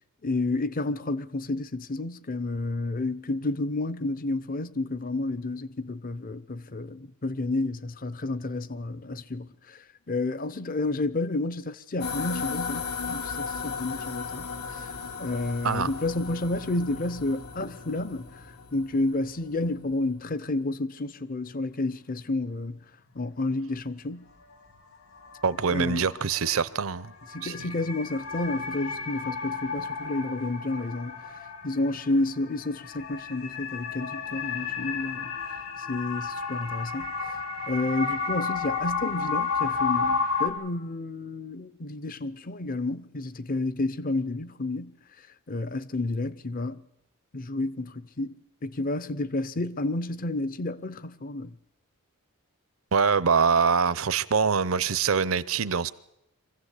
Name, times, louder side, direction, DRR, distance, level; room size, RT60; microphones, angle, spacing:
voice 1, 0.2-9.8 10.1-14.9 15.2-18.3 18.7-22.8 23.1-24.3 25.7-26.1 27.3-31.2 31.6-35.3 35.9-37.1 37.7-45.0 45.5-46.8 47.3-51.5, left 2 dB, 40° left, 0.7 m, -30 dB
sound 1, 12.0-19.6, left 5 dB, 80° left, 2.2 m, -36 dB
sound 2, 21.4-21.5 24.7-24.8 25.2-40.5, left 5 dB, 65° left, 2.9 m, -32 dB
voice 2, 25.4-27.1 27.4-27.7 52.9-55.9, right 5 dB, 65° right, 0.7 m, -24 dB
24.5 x 15.5 x 8.3 m
head